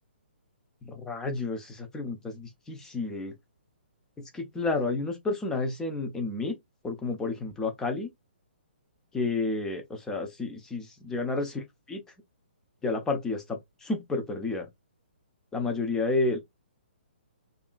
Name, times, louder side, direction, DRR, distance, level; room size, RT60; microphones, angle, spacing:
voice 1, 0.8-3.3 4.3-6.5 6.8-8.1 9.1-11.6 11.9-12.0 12.8-14.7 15.5-16.4, left 3 dB, 10° left, 0.6 m, -30 dB
2.7 x 2.5 x 2.2 m
hypercardioid pair, 145°, 6 cm